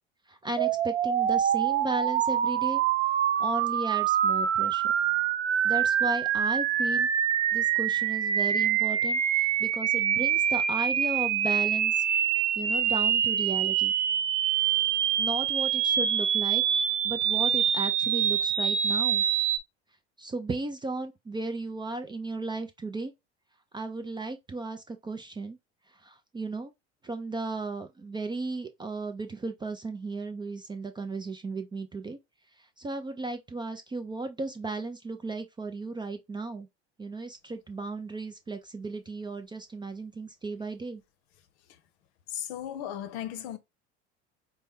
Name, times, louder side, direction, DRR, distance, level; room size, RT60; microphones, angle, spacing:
voice 1, 0.3-2.8 3.4-4.9 5.6-7.1 7.5-12.0 12.6-13.9 15.2-19.2 20.2-23.1 23.7-25.6 26.0-26.7 27.0-32.2 32.8-36.7 37.0-41.0, right 3 dB, 15° right, 0.4 m, -35 dB
sound 1, 0.6-19.6, right 9 dB, 85° right, 0.5 m, -25 dB
voice 2, 42.3-43.6, left 10 dB, 60° left, 0.7 m, -36 dB
4.2 x 2.2 x 3.4 m
hypercardioid pair, 75°, 35 cm